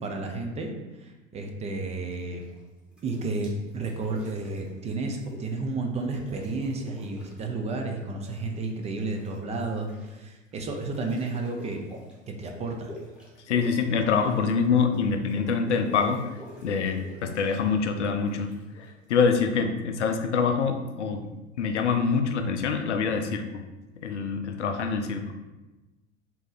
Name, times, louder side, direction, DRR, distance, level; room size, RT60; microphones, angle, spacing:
voice 1, 0.0-0.7 1.0-2.4 3.0-11.8 12.3-12.9, right 3 dB, 20° right, 2 dB, 0.4 m, -32 dB
sound 1, 2.2-2.6 2.9-5.7 5.9-7.7 8.0-19.5, left 1 dB, 5° right, 1.2 m, -48 dB
voice 2, 13.5-16.3 16.6-18.5 18.8-21.3 21.6-23.4 24.0-25.3, left 5 dB, 75° left, 6 dB, 0.5 m, -25 dB
3.7 x 2.8 x 3.9 m, 1.1 s
figure-of-eight pair, 80°, 35 cm